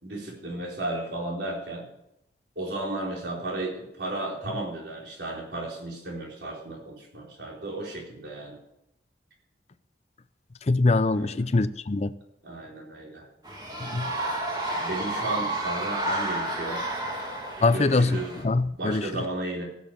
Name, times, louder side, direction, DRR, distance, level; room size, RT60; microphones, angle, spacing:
voice 1, 0.0-1.9 2.6-8.6 11.1-11.4 12.4-13.3 14.7-16.8 17.7-18.4 18.8-19.6, right 2 dB, 75° right, 4.2 m, -34 dB
voice 2, 10.7-12.1 13.9-14.1 17.6-19.1, left 3 dB, 40° left, 0.5 m, -23 dB
sound 1, 13.4-18.4, right 1 dB, 25° right, 2.2 m, -31 dB
15.0 x 7.2 x 7.3 m
head